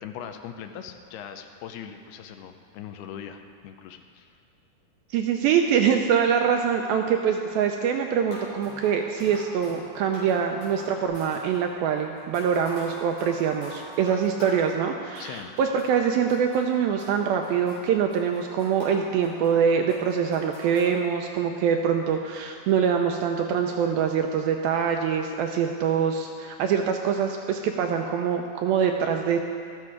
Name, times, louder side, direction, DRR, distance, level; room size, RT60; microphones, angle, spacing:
voice 1, 0.0-4.3 15.2-15.5, left 8 dB, 80° left, 7 dB, 2.6 m, -40 dB
voice 2, 5.1-29.4, right 7 dB, 85° right, 4 dB, 2.2 m, -24 dB
sound 1, 8.0-16.0 16.3-20.9, left 1 dB, 50° left, 5.4 m, -45 dB
13.0 x 13.0 x 4.9 m, 2.3 s
omnidirectional pair, 4.7 m